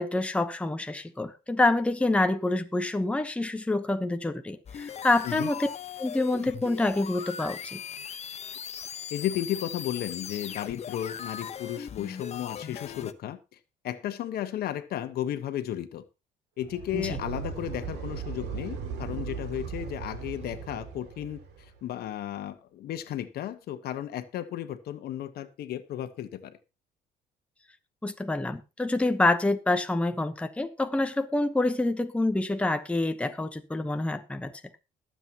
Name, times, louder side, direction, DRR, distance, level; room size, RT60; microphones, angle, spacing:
voice 1, 0.0-5.7 6.0-7.8 16.9-17.2 28.0-34.5, left 2 dB, 5° left, 1.0 m, -27 dB
sound 1, 4.7-13.1, left 8 dB, 40° left, 1.0 m, -39 dB
voice 2, 9.1-13.4 13.8-16.0 16.6-21.4 21.8-26.6, left 11 dB, 65° left, 1.3 m, -34 dB
sound 2, 16.6-21.8, right 6 dB, 85° right, 2.6 m, -37 dB
21.0 x 7.8 x 3.0 m
cardioid pair, 110°, 17 cm